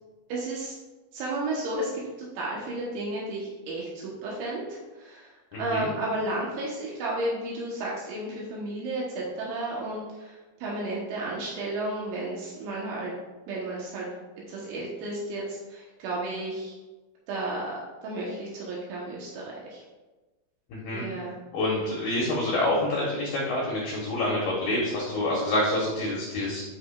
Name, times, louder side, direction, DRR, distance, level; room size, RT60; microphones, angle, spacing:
voice 1, 0.3-0.7 1.1-2.0 2.4-5.3 5.6-13.1 13.5-14.1 14.5-16.7 17.3-19.8 20.9-21.3, right 2 dB, 75° right, -5 dB, 3.3 m, -33 dB
voice 2, 5.5-5.9 20.7-21.0 21.5-26.6, left 1 dB, 70° left, -4 dB, 2.4 m, -27 dB
11.5 x 5.1 x 2.4 m, 1.2 s
omnidirectional pair, 5.9 m